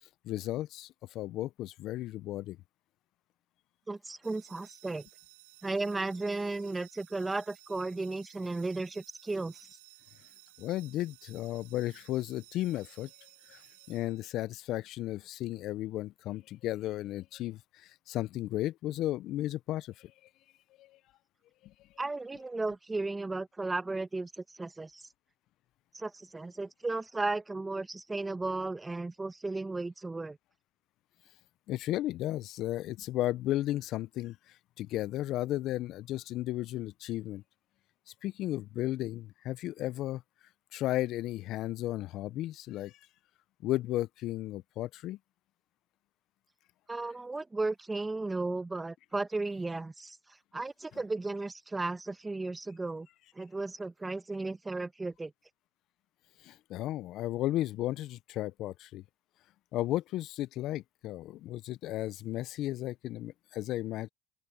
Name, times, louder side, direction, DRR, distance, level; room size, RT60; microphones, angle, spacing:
voice 1, 0.2-2.6 10.6-13.1 13.5-13.6 13.9-20.1 20.8-21.0 21.6-21.7 31.7-37.4 38.2-40.2 40.7-43.0 43.6-45.2 56.4-59.0 59.7-64.1, left 15 dB, 65° left, 0.6 m, -34 dB
voice 2, 3.9-5.1 5.6-9.7 22.0-25.0 25.9-30.4 46.9-50.2 50.5-53.1 53.3-55.3, right 3 dB, 15° right, 1.2 m, -35 dB
sound 1, 4.2-14.6, right 21 dB, 85° right, 4.0 m, -58 dB
open air
hypercardioid pair, 75°, 0 cm